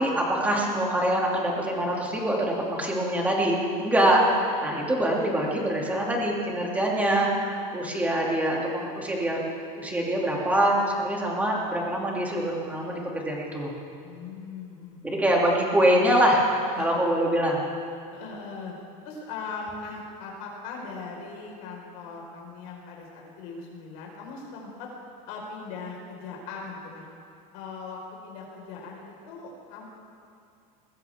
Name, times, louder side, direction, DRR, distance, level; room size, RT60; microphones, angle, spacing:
voice 1, 0.0-9.4 9.8-13.7 15.0-16.4 16.8-17.6, right 1 dB, 10° right, -2 dB, 2.6 m, -24 dB
voice 2, 14.0-15.3 16.7-17.0 18.1-18.7 19.0-24.9 25.3-27.1 27.5-29.9, left 4 dB, 70° left, -2 dB, 4.7 m, -39 dB
21.0 x 15.5 x 3.6 m, 2.4 s
supercardioid pair, 145°, 19 cm